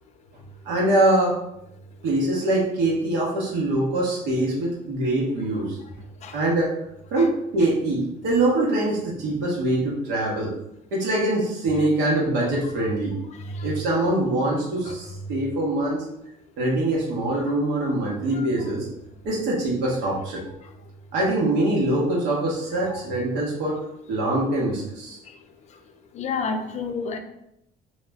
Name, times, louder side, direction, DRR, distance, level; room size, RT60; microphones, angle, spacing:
voice 1, 0.6-1.4 2.0-5.8 6.3-6.7 7.1-10.5 10.9-13.1 13.6-16.0 16.6-18.9 19.2-20.4 21.1-23.8 24.1-25.2, right 1 dB, 90° right, -4 dB, 0.9 m, -23 dB
voice 2, 26.1-27.2, left 4 dB, 45° left, 6 dB, 0.4 m, -30 dB
2.3 x 2.0 x 3.4 m, 0.81 s
cardioid pair, 110°, 17 cm